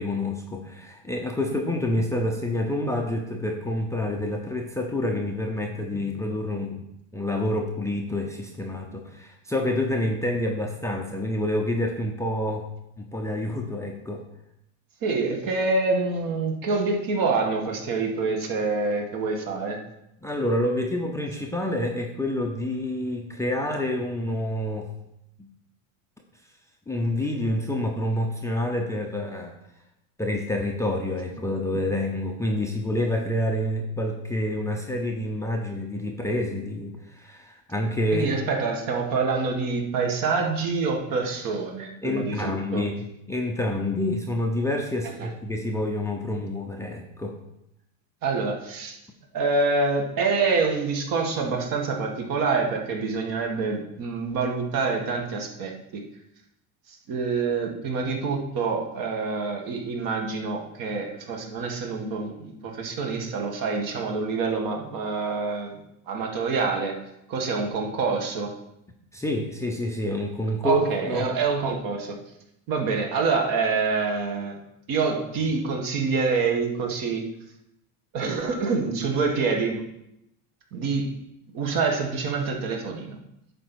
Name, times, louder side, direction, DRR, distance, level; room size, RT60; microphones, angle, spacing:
voice 1, 0.0-6.9 7.1-12.7 13.0-14.2 20.2-24.9 25.4-25.5 26.9-29.5 30.2-38.3 42.0-47.4 69.1-70.8 71.1-71.3, left 1 dB, 5° left, 1 dB, 0.6 m, -28 dB
voice 2, 15.0-19.8 38.1-42.9 45.2-45.3 48.2-49.0 49.3-56.0 57.1-65.8 66.1-66.9 67.3-68.5 70.6-72.2 72.7-74.6 74.9-77.2 78.1-79.8 80.7-81.2 81.5-83.2, right 4 dB, 50° right, 2 dB, 1.9 m, -26 dB
9.0 x 4.1 x 6.3 m, 0.82 s
supercardioid pair, 130°, 42 cm